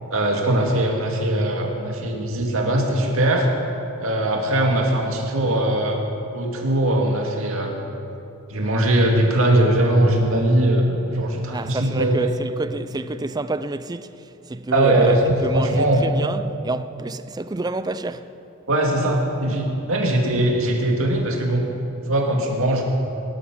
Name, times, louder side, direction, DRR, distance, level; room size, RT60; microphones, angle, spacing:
voice 1, 0.1-3.5 4.0-6.0 6.3-7.7 8.5-12.3 14.7-16.0 18.7-21.6 22.1-22.8, right 1 dB, 65° right, 2.2 m, -20 dB
voice 2, 11.5-18.3, right 2 dB, 15° right, 0.4 m, -28 dB
18.5 x 11.5 x 6.1 m
head